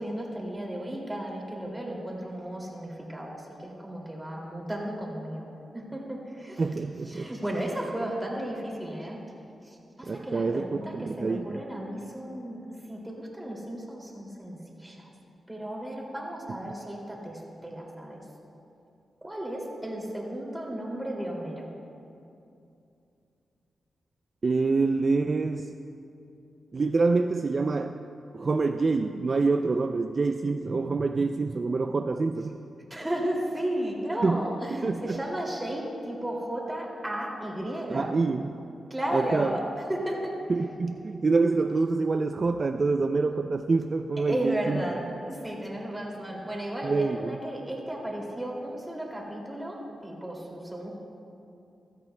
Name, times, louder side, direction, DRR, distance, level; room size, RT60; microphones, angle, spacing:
voice 1, 0.0-5.5 5.7-6.7 7.1-9.2 9.6-12.6 12.9-15.1 15.5-18.2 19.2-21.7 32.9-38.1 38.9-39.6 39.9-40.4 44.3-50.9, right 1 dB, 10° right, -2 dB, 2.4 m, -34 dB
voice 2, 6.6-7.3 10.0-11.6 24.4-25.7 26.7-28.0 28.3-32.6 34.2-34.4 34.8-35.2 37.9-38.6 39.1-39.6 40.5-45.0 46.8-47.4, right 3 dB, 45° right, 7 dB, 0.3 m, -26 dB
15.5 x 13.5 x 2.2 m, 2.7 s
cardioid pair, 75°, 0 cm